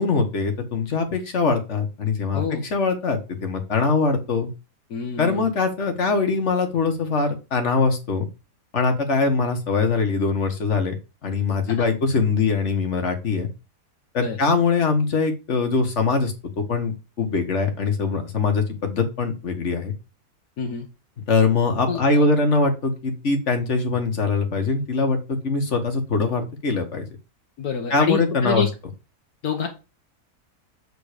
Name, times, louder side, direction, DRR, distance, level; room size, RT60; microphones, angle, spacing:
voice 1, 0.0-2.4 2.7-4.5 5.2-8.3 8.7-10.9 11.2-13.5 14.1-19.9 21.3-27.0 27.9-28.7, left 4 dB, 45° left, 5 dB, 1.6 m, -22 dB
voice 2, 2.3-2.7 4.9-5.5 11.7-11.8 14.2-14.4 20.6-20.9 21.9-22.3 27.6-28.7 29.4-29.7, left 6 dB, 65° left, 4 dB, 1.5 m, -27 dB
8.2 x 3.8 x 4.9 m, 0.29 s
omnidirectional pair, 1.7 m